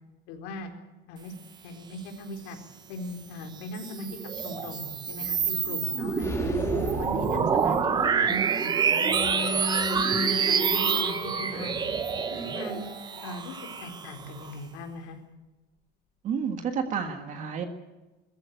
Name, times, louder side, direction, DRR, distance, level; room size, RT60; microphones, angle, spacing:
voice 1, 0.3-0.7 1.1-1.3 1.6-2.6 2.9-6.6 7.0-9.5 9.9-11.9 12.3-12.9 13.2-15.2, left 2 dB, 90° left, 4 dB, 4.0 m, -39 dB
sound 1, 3.6-14.5, right 6 dB, 20° right, 1.0 m, -27 dB
sound 2, 6.2-8.4, left 2 dB, 15° left, 2.7 m, -36 dB
Bowed string instrument, 8.9-13.9, left 6 dB, 35° left, 1.2 m, -37 dB
voice 2, 16.2-17.6, right 6 dB, 35° right, 6 dB, 1.7 m, -30 dB
22.0 x 14.5 x 9.2 m, 1.1 s
cardioid pair, 180°, 21 cm